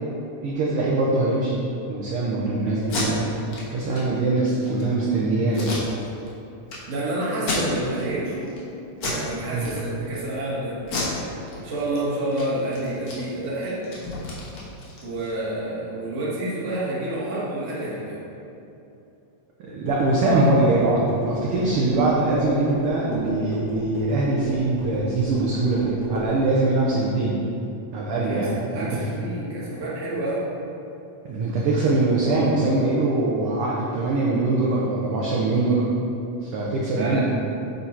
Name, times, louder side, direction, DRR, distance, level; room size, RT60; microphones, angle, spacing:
voice 1, 0.4-1.5 1.9-3.3 3.7-5.9 9.5-9.7 19.7-27.4 27.9-29.1 31.2-35.9 36.4-37.3, right 2 dB, 70° right, -4 dB, 1.4 m, -22 dB
Packing tape duct tape, 2.8-3.1 3.5-3.6 3.9-4.0 4.5-4.8 5.5-6.3 6.7-6.8 7.4-8.0 8.4-8.6 9.0-9.3 9.6-10.2 10.8-12.0 12.3-12.4 12.7-15.3, left 3 dB, 55° left, 1.9 m, -32 dB
voice 2, 6.9-8.5 9.0-10.8 11.5-13.8 15.0-18.2 28.2-30.4 36.9-37.3, right 1 dB, 35° right, -7 dB, 1.3 m, -29 dB
sound 1, 19.8-26.3, left 1 dB, 35° left, 1.7 m, -36 dB
8.5 x 4.0 x 4.3 m, 2.8 s
omnidirectional pair, 3.3 m